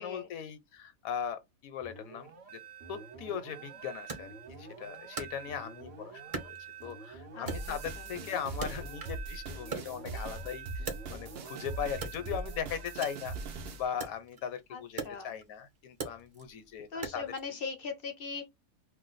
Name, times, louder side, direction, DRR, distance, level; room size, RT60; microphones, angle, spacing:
voice 1, 0.0-2.6 2.9-6.6 6.8-13.3 13.7-17.2, left 8 dB, 75° left, 1.0 m, -39 dB
sound 1, 1.8-13.9, right 6 dB, 55° right, 1.0 m, -48 dB
Wood, 4.1-5.9 6.3-7.1 7.5-9.3 9.6-11.5 11.9-17.5, right 4 dB, 35° right, 0.7 m, -43 dB
voice 2, 7.3-7.8 14.7-15.3 16.9-18.5, left 5 dB, 60° left, 0.6 m, -40 dB
sound 2, 7.5-13.8, right 2 dB, 70° right, 0.5 m, -41 dB
2.5 x 2.2 x 3.9 m
omnidirectional pair, 1.5 m